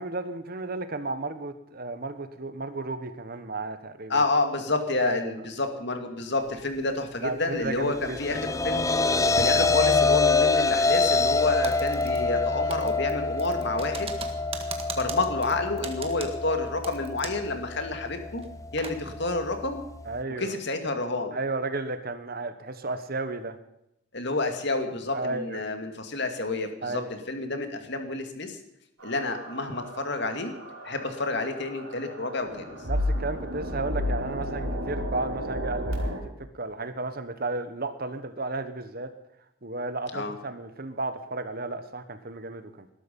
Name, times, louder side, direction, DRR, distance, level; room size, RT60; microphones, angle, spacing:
voice 1, 0.0-4.2 5.0-5.4 7.2-8.5 9.5-9.7 20.0-20.6 21.3-23.6 25.1-25.6 26.8-27.1 32.0-32.1 32.9-36.1 36.5-39.1 39.6-42.9, right 3 dB, 45° right, 10 dB, 1.3 m, -33 dB
voice 2, 4.1-8.9 9.4-14.1 15.0-18.4 18.7-19.8 20.4-21.4 24.1-27.0 27.3-28.6 29.0-30.5 30.8-32.7 40.1-40.3, left 2 dB, 55° left, 6 dB, 2.4 m, -29 dB
sound 1, 7.9-20.2, left 4 dB, 15° left, 0.6 m, -26 dB
Typing, 11.6-12.4 12.7-17.5 17.8-17.9 18.4-19.0, right 5 dB, 25° right, 1.7 m, -39 dB
sound 2, 29.0-36.2, equal, 85° right, 5.2 m, -33 dB
20.0 x 12.5 x 5.5 m, 0.80 s
head